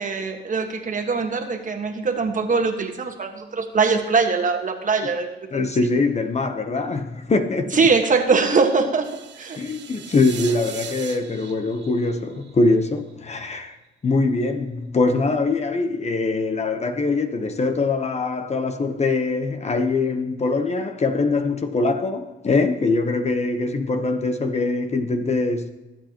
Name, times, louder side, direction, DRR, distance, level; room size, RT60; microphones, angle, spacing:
voice 1, 0.0-5.6 7.7-9.1 9.4-9.6, right 4 dB, 40° right, 1.5 m, -22 dB
voice 2, 5.5-7.8 9.6-13.8 14.0-25.7, left 3 dB, 35° left, 0.9 m, -23 dB
sound 1, 9.0-13.1, right 8 dB, 65° right, 1.1 m, -39 dB
23.0 x 8.2 x 3.0 m
cardioid pair, 90°, 20 cm